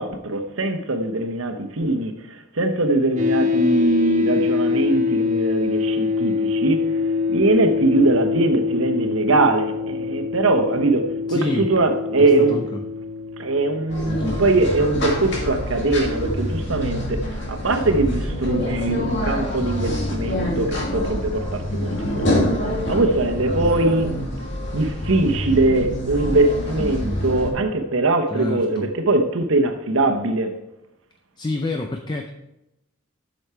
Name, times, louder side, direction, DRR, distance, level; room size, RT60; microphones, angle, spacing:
voice 1, 0.0-6.9 7.3-12.6 13.4-22.5 22.9-24.1 24.7-30.6, right 2 dB, 85° right, 1.0 m, -21 dB
sound 1, 3.2-15.3, left 5 dB, 35° right, 1.2 m, -24 dB
voice 2, 11.3-11.7 12.2-12.8 14.1-14.5 28.3-28.9 31.4-32.3, left 2 dB, 20° left, 0.4 m, -28 dB
sound 2, 13.9-27.5, left 1 dB, 60° left, 2.2 m, -26 dB
8.2 x 6.4 x 4.4 m
head